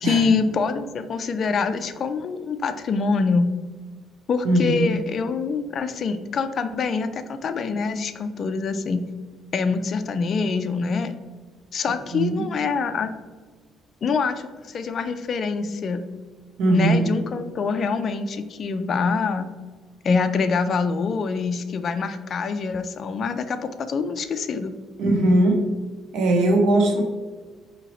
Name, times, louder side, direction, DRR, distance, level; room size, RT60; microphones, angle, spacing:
voice 1, 0.0-3.5 4.3-9.1 9.5-11.1 11.7-13.1 14.0-16.0 16.7-19.5 20.0-24.8, left 4 dB, 45° left, 8 dB, 0.3 m, -25 dB
voice 2, 4.4-4.9 12.1-12.4 16.6-17.1 25.0-25.6 26.1-27.0, right 1 dB, 80° right, 2 dB, 0.8 m, -19 dB
5.0 x 2.8 x 3.0 m, 1.4 s
cardioid pair, 120°, 0 cm